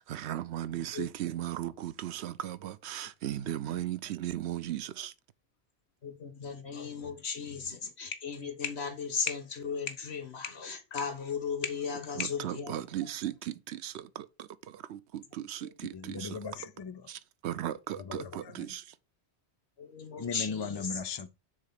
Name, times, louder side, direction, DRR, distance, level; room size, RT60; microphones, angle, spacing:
voice 1, 0.1-5.1 12.2-15.9 17.1-18.9, right 12 dB, 85° right, 0.9 m, -37 dB
voice 2, 0.7-1.0 6.0-12.8 15.6-15.7 18.1-18.3 19.8-21.0, left 6 dB, 75° left, 1.6 m, -36 dB
voice 3, 3.3-3.8 15.9-17.0 17.9-18.8 20.2-21.3, left 5 dB, 40° left, 0.3 m, -39 dB
6.5 x 3.7 x 5.8 m
omnidirectional pair, 1.1 m